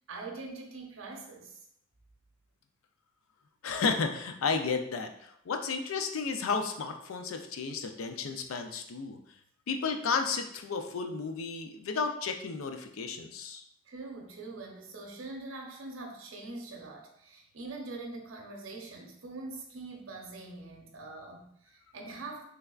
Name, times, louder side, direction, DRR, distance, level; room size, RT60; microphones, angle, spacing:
voice 1, 0.1-1.6 13.9-22.4, right 3 dB, 75° right, 1 dB, 0.7 m, -43 dB
voice 2, 3.6-9.2 9.7-13.6, left 5 dB, 90° left, 6 dB, 0.4 m, -33 dB
3.3 x 3.3 x 2.3 m, 0.72 s
head